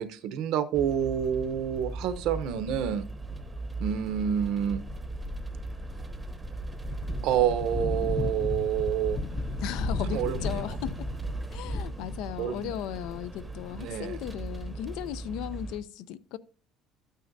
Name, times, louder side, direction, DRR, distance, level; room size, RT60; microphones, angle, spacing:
voice 1, 0.0-3.1 3.8-4.8 7.2-9.2 10.1-10.8 12.4-12.7 13.8-14.2, right 9 dB, 65° right, 0.8 m, -28 dB
sound 1, 0.7-15.8, right 2 dB, 10° right, 0.8 m, -38 dB
sound 2, 6.8-12.2, left 3 dB, 25° left, 0.6 m, -34 dB
voice 2, 9.6-11.1 11.5-16.4, left 11 dB, 75° left, 0.5 m, -36 dB
12.5 x 9.1 x 2.6 m
cardioid pair, 150°, 0 cm